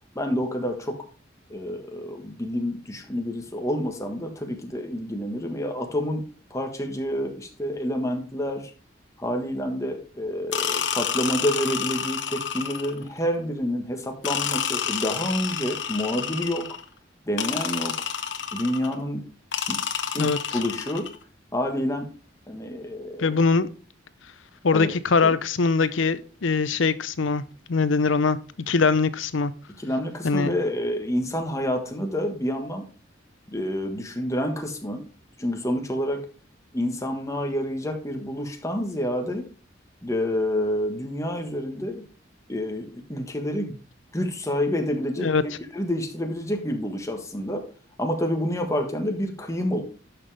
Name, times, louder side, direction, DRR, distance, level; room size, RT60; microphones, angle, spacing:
voice 1, 0.1-1.0 1.5-6.2 6.5-8.7 9.2-16.7 17.3-17.9 18.5-19.2 19.7-19.8 20.1-21.1 21.5-22.1 22.5-23.4 24.7-24.9 25.2-25.4 29.8-32.8 33.5-35.0 35.4-36.2 36.7-39.4 40.0-42.0 42.5-43.8 44.1-47.6 48.0-49.8, equal, 15° left, 1.4 m, -28 dB
sound 1, 10.5-13.1 14.2-16.8 17.4-19.0 19.5-21.2, left 8 dB, 70° left, 1.0 m, -29 dB
voice 2, 23.2-23.7 24.6-27.4 27.7-28.4 28.7-29.5 30.2-30.5 45.2-45.4, left 4 dB, 90° left, 0.7 m, -22 dB
11.5 x 5.8 x 3.4 m
head